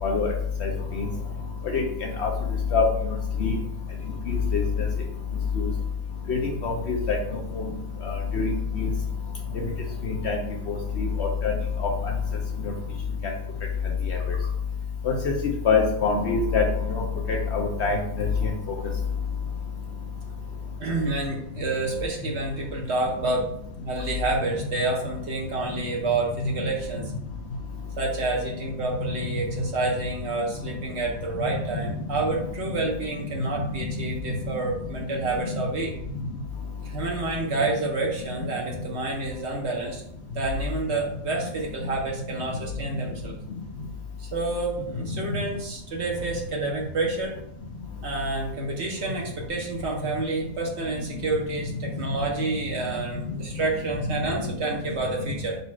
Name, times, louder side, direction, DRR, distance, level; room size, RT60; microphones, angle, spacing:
voice 1, 0.0-0.3 0.6-0.7 1.0-1.1 1.7-1.8 2.2-2.3 2.7-2.8 3.4-3.6 4.3-4.6 5.6-5.7 6.3-7.2 7.5-7.6 8.0-8.9 10.0-10.4 10.7-11.5 11.8-11.9 14.1-14.2 15.0-15.1 15.6-16.6 16.9-17.0 17.3-18.5, left 5 dB, 60° left, 0 dB, 0.8 m, -24 dB
voice 2, 20.8-23.5 23.8-27.1 28.0-35.9 36.8-40.0 40.3-43.3 44.2-47.3 48.0-55.6, right 3 dB, 55° right, -1 dB, 1.0 m, -29 dB
4.0 x 2.4 x 4.3 m, 0.72 s
omnidirectional pair, 1.5 m